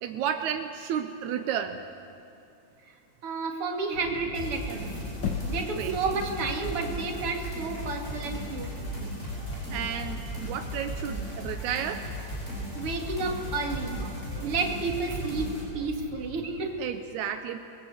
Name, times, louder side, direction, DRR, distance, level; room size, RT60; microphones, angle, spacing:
voice 1, 0.0-1.9 5.8-6.2 9.7-12.1 14.3-14.5 16.8-17.6, right 9 dB, 85° right, 7 dB, 2.2 m, -32 dB
voice 2, 3.2-4.9 5.5-8.7 12.7-14.0 14.4-16.8, right 3 dB, 50° right, 2 dB, 3.1 m, -31 dB
sound 1, 3.9-16.6, equal, 40° left, 7.4 m, -43 dB
sound 2, 4.3-15.6, equal, 20° left, 7.8 m, -36 dB
Knock, 5.2-5.9, left 6 dB, 60° left, 1.2 m, -31 dB
28.5 x 21.5 x 8.0 m, 2.6 s
omnidirectional pair, 3.3 m